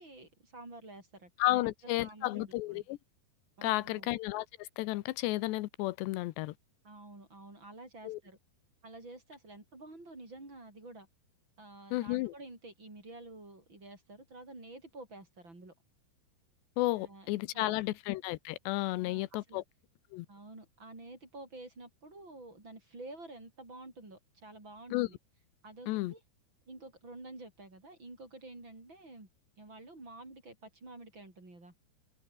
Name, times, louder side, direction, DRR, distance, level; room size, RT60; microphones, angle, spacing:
voice 1, 0.0-1.7 2.0-2.9 3.6-4.1 6.8-8.4 8.8-11.1 11.6-15.7 17.0-17.3 17.5-17.7 19.0-19.6 20.3-25.2 25.6-26.2 26.7-29.3 29.6-31.7, right 2 dB, 25° right, 7.4 m, -50 dB
voice 2, 1.4-3.0 3.6-6.5 8.0-8.2 11.9-12.3 16.8-19.6 20.1-20.3 24.9-25.1 25.9-26.1, left 18 dB, 85° left, 3.0 m, -32 dB
open air
omnidirectional pair, 4.9 m